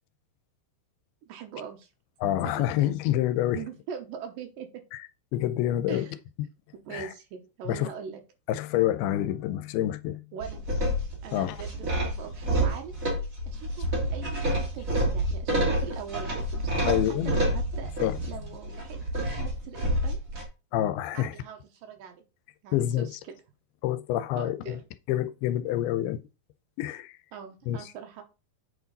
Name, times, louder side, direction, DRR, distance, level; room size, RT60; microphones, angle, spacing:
voice 1, 1.3-1.9 2.4-2.7 3.5-4.8 5.9-6.1 6.7-8.2 10.3-10.6 11.2-12.9 13.5-17.0 17.2-17.9 18.3-20.2 21.1-22.2 22.6-23.4 24.4-24.8 27.3-28.2, right 7 dB, 70° right, 2.5 m, -42 dB
voice 2, 2.2-3.6 5.3-6.1 6.9-7.1 7.7-7.9 8.5-10.2 11.3-11.6 16.9-17.4 18.0-18.2 20.7-21.4 22.7-23.1 23.8-24.8 25.1-26.2 26.8-27.2 27.7-27.8, left 12 dB, 85° left, 2.5 m, -27 dB
sound 1, 10.4-20.4, right 1 dB, 25° right, 2.3 m, -28 dB
8.2 x 4.9 x 4.0 m
omnidirectional pair, 4.5 m